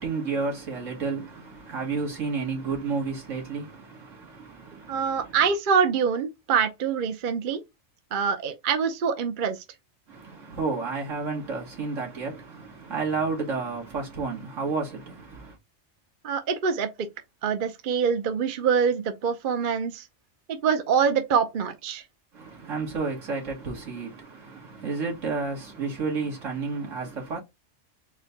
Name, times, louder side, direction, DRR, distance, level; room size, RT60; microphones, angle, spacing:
voice 1, 0.0-5.4 10.1-15.6 22.3-27.4, right 4 dB, 80° right, 2.0 m, -31 dB
voice 2, 4.9-7.6 8.1-9.6 16.2-17.1 17.4-20.1 20.5-22.0, right 6 dB, 50° right, 0.8 m, -25 dB
4.3 x 2.2 x 3.9 m
omnidirectional pair, 1.3 m